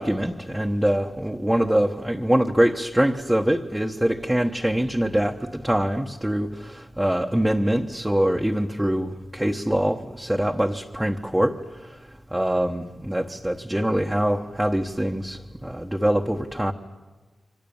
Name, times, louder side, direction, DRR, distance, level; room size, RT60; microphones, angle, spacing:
voice 1, 0.0-12.0 12.3-16.7, right 1 dB, 5° right, 0 dB, 1.2 m, -24 dB
28.5 x 25.0 x 7.2 m, 1.2 s
wide cardioid pair, 95°, 0 cm